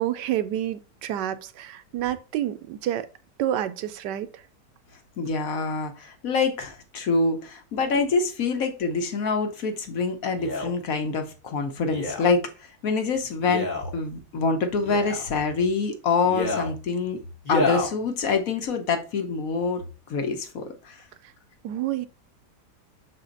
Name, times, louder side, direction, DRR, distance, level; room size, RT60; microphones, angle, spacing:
voice 1, 0.0-3.1 3.4-4.3 21.6-22.1, right 12 dB, 85° right, 1.2 m, -28 dB
voice 2, 5.2-13.7 13.9-17.2 17.5-19.8 20.1-21.0, left 4 dB, 60° left, 1.2 m, -26 dB
Male speech man speaking, 10.4-10.7 11.9-12.3 13.4-13.9 14.8-15.3 16.2-16.7 17.4-17.9 18.6-18.7, left 3 dB, 30° left, 1.2 m, -28 dB
6.2 x 4.1 x 3.9 m
omnidirectional pair, 1.8 m